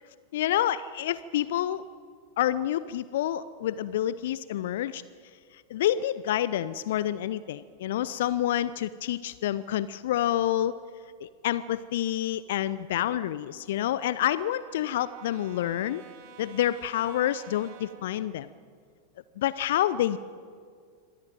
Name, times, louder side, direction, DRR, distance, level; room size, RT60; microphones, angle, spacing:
voice 1, 0.3-1.8 2.4-5.0 5.7-10.8 11.2-16.0 16.4-18.5 19.4-20.2, left 12 dB, 55° left, 17 dB, 0.6 m, -28 dB
Brass instrument, 12.6-18.2, right 7 dB, 45° right, 2.3 m, -51 dB
25.0 x 18.0 x 9.1 m, 2.1 s
figure-of-eight pair, 90°, 0 cm